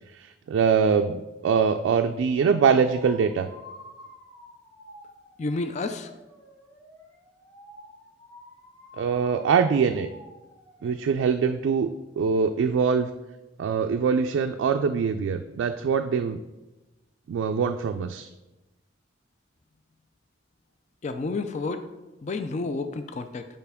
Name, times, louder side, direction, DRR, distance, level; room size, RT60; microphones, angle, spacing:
voice 1, 0.2-3.5 9.0-10.1 10.8-13.1 13.6-16.4 17.3-18.3, right 6 dB, 80° right, 6 dB, 0.3 m, -23 dB
sound 1, 2.4-11.3, left 1 dB, 20° left, 1.9 m, -49 dB
voice 2, 5.4-6.1 21.0-21.9 22.2-23.5, left 3 dB, 35° left, 8 dB, 0.3 m, -30 dB
6.8 x 5.0 x 3.5 m, 1.1 s
head